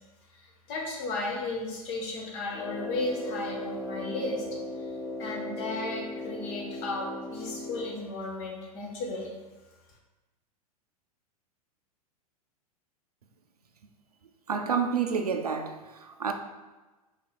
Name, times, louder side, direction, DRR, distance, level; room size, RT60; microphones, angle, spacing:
voice 1, 0.3-4.4 5.2-9.3, left 2 dB, 40° left, 1.1 m, -34 dB
Brass instrument, 2.5-8.1, left 2 dB, 85° left, 1.2 m, -37 dB
voice 2, 14.5-16.3, right 6 dB, 80° right, 0.4 m, -29 dB
5.1 x 3.3 x 2.2 m
figure-of-eight pair, 95°, 19 cm